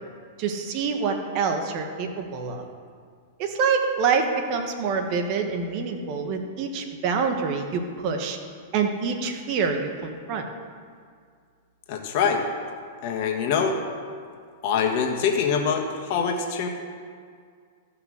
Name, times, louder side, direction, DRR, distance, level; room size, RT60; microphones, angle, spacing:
voice 1, 0.4-2.7 3.4-8.4 8.7-10.5, right 5 dB, 45° right, 4 dB, 1.4 m, -26 dB
voice 2, 11.9-12.4 13.0-13.8 14.6-16.7, left 6 dB, 55° left, 2 dB, 1.5 m, -24 dB
14.5 x 5.8 x 6.5 m, 2.1 s
hypercardioid pair, 125°, 0 cm